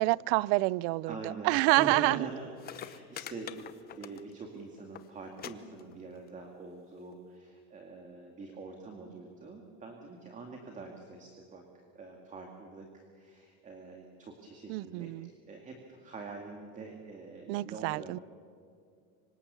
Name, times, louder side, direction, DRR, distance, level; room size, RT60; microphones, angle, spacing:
voice 1, 0.0-2.3 14.7-15.3 17.5-18.2, right 22 dB, 65° right, 0.5 m, -28 dB
voice 2, 1.1-3.6 3.9-11.6 11.9-18.2, right 3 dB, 20° right, 2.3 m, -44 dB
sound 1, 2.3-2.4 2.6-4.5 4.8-5.1 5.4-5.5 5.8-6.3 7.1-7.2, left 11 dB, 30° left, 0.8 m, -44 dB
25.5 x 25.0 x 7.0 m
cardioid pair, 145°, 33 cm